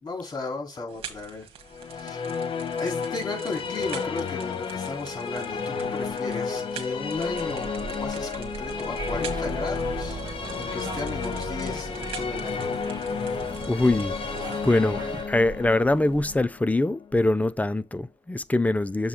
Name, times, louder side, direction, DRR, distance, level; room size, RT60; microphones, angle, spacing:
voice 1, 0.0-1.5 2.0-2.3 2.8-10.2 10.6-12.7, left 3 dB, 45° left, 3.7 m, -35 dB
sound 1, 0.9-16.4, right 6 dB, 80° right, 1.6 m, -43 dB
Musical instrument, 1.7-17.1, left 5 dB, 65° left, 1.1 m, -32 dB
sound 2, 9.0-15.2, right 3 dB, 45° right, 1.6 m, -38 dB
voice 2, 13.7-14.2 14.6-19.1, left 2 dB, 15° left, 0.6 m, -23 dB
7.2 x 3.1 x 5.7 m
cardioid pair, 60°, 10 cm